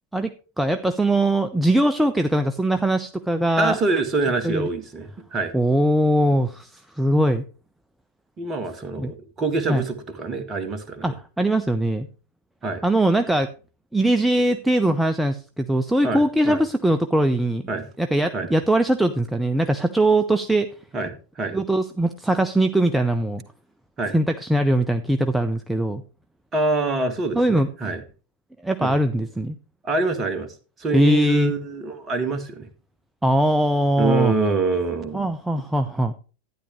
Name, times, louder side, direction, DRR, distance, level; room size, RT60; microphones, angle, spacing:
voice 1, 0.1-3.8 4.4-4.7 5.5-7.4 9.0-9.1 9.7-9.8 11.0-12.1 12.8-13.5 13.9-17.6 18.0-20.7 21.5-23.4 24.1-26.0 27.3-27.7 28.6-29.6 30.9-31.5 33.2-34.3 35.1-36.1, right 1 dB, 5° right, 8 dB, 0.6 m, -21 dB
voice 2, 3.6-5.5 8.4-11.1 12.6-12.8 16.0-16.6 17.7-17.9 18.3-18.5 20.9-21.6 24.0-24.1 26.5-28.0 28.8-28.9 29.8-32.7 34.0-35.3, right 3 dB, 25° right, 8 dB, 1.7 m, -25 dB
12.0 x 10.0 x 3.1 m, 0.34 s
figure-of-eight pair, 90°, 0 cm